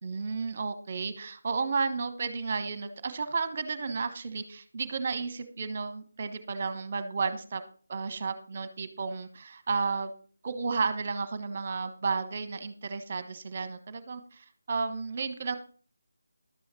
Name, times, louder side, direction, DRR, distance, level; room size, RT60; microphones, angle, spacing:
voice 1, 0.0-7.6 7.9-10.1 10.4-15.5, right 4 dB, 35° right, 11 dB, 1.1 m, -32 dB
12.0 x 8.4 x 4.3 m, 0.42 s
figure-of-eight pair, 155°, 0 cm